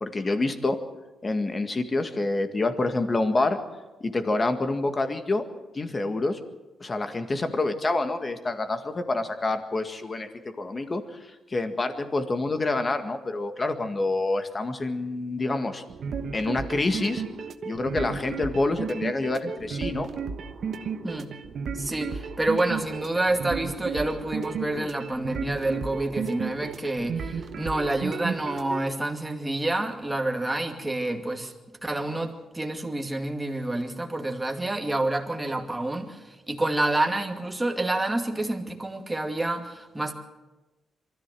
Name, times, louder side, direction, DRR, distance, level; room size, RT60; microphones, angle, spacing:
voice 1, 0.0-0.8 1.2-3.6 4.0-5.4 5.7-6.4 6.8-10.3 10.6-15.8 16.3-17.2 17.6-20.1 24.8-24.9, left 2 dB, 30° left, 7 dB, 1.9 m, -27 dB
sound 1, 15.9-28.8, right 5 dB, 60° right, 1.2 m, -33 dB
voice 2, 21.0-21.4 21.7-31.5 31.8-40.1, right 2 dB, 10° right, 2 dB, 2.4 m, -28 dB
24.0 x 14.0 x 7.7 m, 1.1 s
cardioid pair, 115°, 0 cm